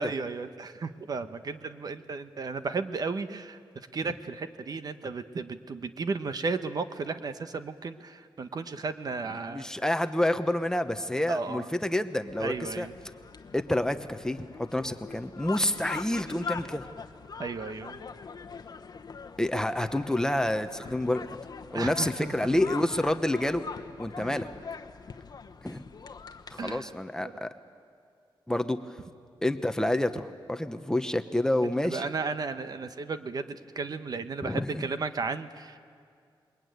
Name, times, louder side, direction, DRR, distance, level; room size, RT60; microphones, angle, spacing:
voice 1, 0.0-9.7 11.3-11.7 12.4-12.9 17.4-18.0 21.7-22.1 24.2-24.4 26.6-26.9 27.2-27.3 31.6-35.8, right 4 dB, 45° right, 10 dB, 1.0 m, -34 dB
voice 2, 9.5-12.9 13.5-16.9 19.4-21.4 21.7-23.6 24.0-24.5 25.6-25.8 26.5-27.5 28.5-28.8 29.4-32.0 34.4-34.9, left 1 dB, 5° left, 8 dB, 0.9 m, -28 dB
sound 1, 12.3-26.8, left 5 dB, 45° left, 1.1 m, -43 dB
28.0 x 22.0 x 9.4 m, 2.2 s
wide cardioid pair, 140°, 9 cm